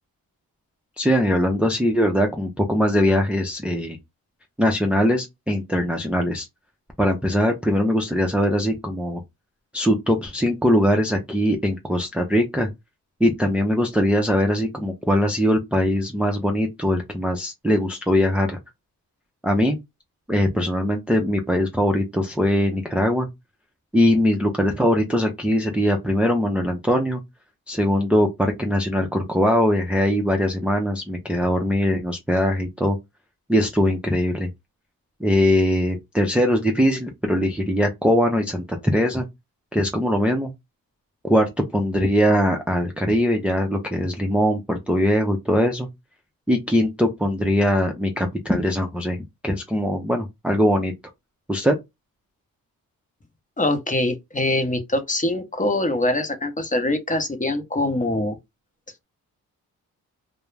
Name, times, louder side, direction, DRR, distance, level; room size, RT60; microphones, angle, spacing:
voice 1, 1.0-4.0 4.6-6.5 7.0-9.2 9.7-12.7 13.2-18.6 19.4-19.8 20.3-23.3 23.9-27.2 27.7-33.0 33.5-34.5 35.2-39.3 39.7-40.5 41.2-45.9 46.5-49.2 49.4-50.9 51.5-51.8, equal, 5° right, 0.5 m, -21 dB
voice 2, 53.6-58.4, left 1 dB, 20° left, 0.8 m, -23 dB
2.2 x 2.0 x 3.2 m
cardioid pair, 65°, 37 cm